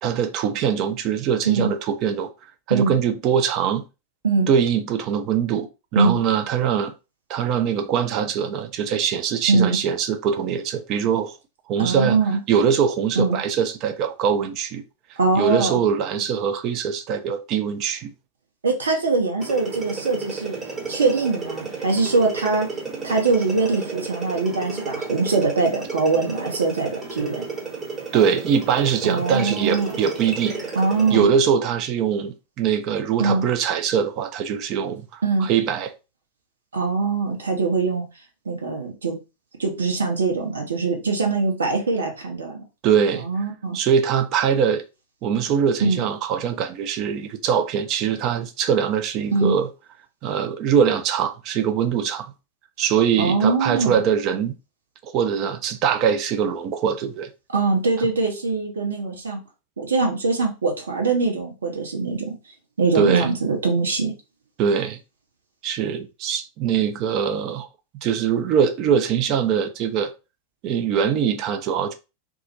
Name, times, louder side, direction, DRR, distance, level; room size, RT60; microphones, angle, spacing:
voice 1, 0.0-2.3 2.7-3.9 4.5-5.7 5.9-6.9 7.3-11.3 11.7-12.2 12.5-14.8 15.4-18.1 28.1-30.6 31.1-35.9 42.8-43.3 43.7-44.8 45.2-49.7 50.2-52.3 52.8-54.6 55.0-57.3 62.9-63.3 64.6-65.0 65.6-67.7 68.0-70.1 70.6-71.9, right 7 dB, 40° right, 0.3 m, -22 dB
voice 2, 11.8-12.4 13.2-13.4 15.2-15.8 18.6-20.6 20.9-22.7 23.0-27.4 29.0-29.9 30.8-31.3 33.2-33.4 35.2-35.5 36.7-38.0 38.5-39.1 39.6-42.6 43.2-43.8 45.8-46.0 49.3-49.6 53.2-54.0 57.5-59.4 59.8-62.3 62.8-64.1, right 3 dB, 70° right, 0.8 m, -22 dB
sound 1, 19.4-31.2, right 3 dB, 20° right, 0.7 m, -33 dB
2.3 x 2.0 x 2.8 m
figure-of-eight pair, 90°, 0 cm